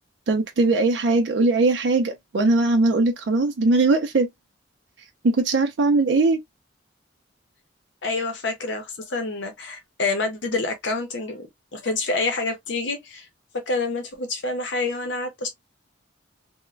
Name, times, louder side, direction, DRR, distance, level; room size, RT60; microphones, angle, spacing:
voice 1, 0.3-4.3 5.0-6.4, right 3 dB, 70° right, 0.5 m, -20 dB
voice 2, 8.0-11.5 11.7-13.3 13.5-15.5, left 3 dB, 75° left, 0.7 m, -27 dB
3.0 x 2.1 x 2.4 m
head